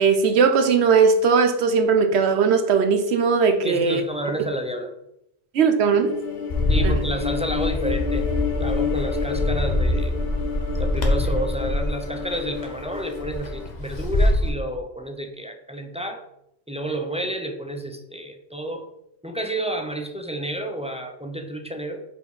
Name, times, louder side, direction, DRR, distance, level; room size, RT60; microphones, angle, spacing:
voice 1, 0.0-4.0 5.5-6.1 6.8-7.0, right 5 dB, 85° right, 8 dB, 1.0 m, -19 dB
voice 2, 3.6-4.9 6.7-8.3 8.5-10.2 10.8-16.2 16.7-18.9 19.2-22.0, right 1 dB, 10° right, 4 dB, 0.3 m, -30 dB
sound 1, 5.9-13.7, left 7 dB, 70° left, 1.3 m, -30 dB
Bird, 6.5-14.5, left 1 dB, 45° left, 1.0 m, -24 dB
5.2 x 4.4 x 4.8 m, 0.81 s
omnidirectional pair, 1.1 m